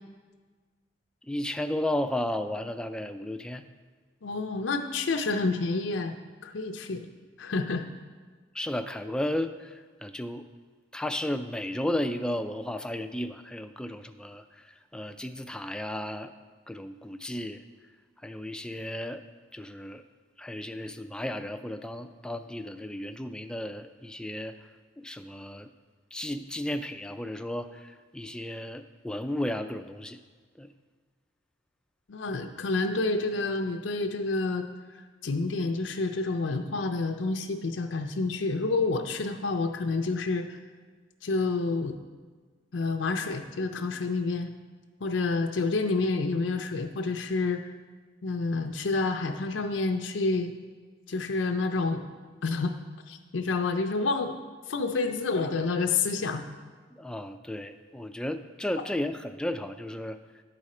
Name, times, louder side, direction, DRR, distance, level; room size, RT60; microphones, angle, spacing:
voice 1, 1.2-3.6 8.5-10.5 10.9-16.3 16.7-17.6 18.2-19.2 19.5-20.0 20.4-24.7 25.0-25.7 26.1-30.2 30.6-30.7 56.9-60.2, left 1 dB, 5° left, 8 dB, 0.3 m, -34 dB
voice 2, 4.2-6.1 6.4-7.1 7.4-7.9 32.1-34.7 35.2-40.6 41.2-42.0 42.7-44.5 45.0-47.6 48.2-50.5 51.1-52.0 52.4-52.7 53.1-54.4 54.7-56.4, left 3 dB, 85° left, 5 dB, 0.5 m, -28 dB
11.0 x 5.0 x 4.2 m, 1.4 s
head